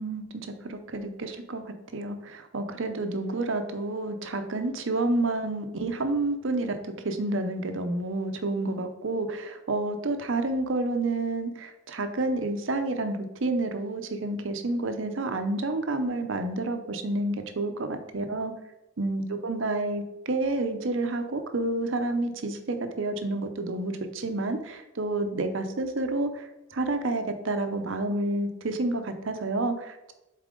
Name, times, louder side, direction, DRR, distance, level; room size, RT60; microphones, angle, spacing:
voice 1, 0.0-18.5 19.0-30.1, right 2 dB, 60° right, 7 dB, 0.7 m, -29 dB
7.3 x 4.1 x 3.8 m, 0.97 s
head